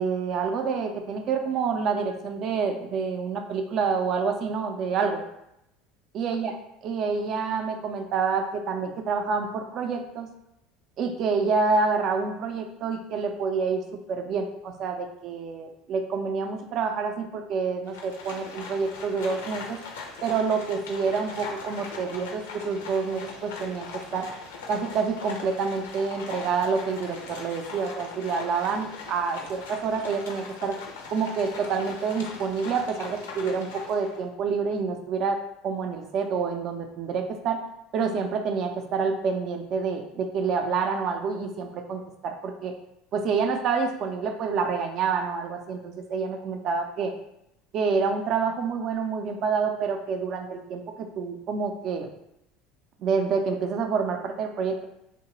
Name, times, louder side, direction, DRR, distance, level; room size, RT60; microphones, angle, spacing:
voice 1, 0.0-5.2 6.1-6.5 6.8-10.3 11.0-13.8 14.1-19.8 20.2-23.9 24.1-24.3 24.7-30.8 31.1-37.6 37.9-42.7 43.1-47.1 47.7-52.1 53.0-54.8, right 5 dB, 50° right, 5 dB, 0.4 m, -28 dB
Livestock farm animals working animals, 17.9-34.2, left 4 dB, 75° left, 0.5 m, -40 dB
2.8 x 2.1 x 3.0 m, 0.82 s
figure-of-eight pair, 70°, 0 cm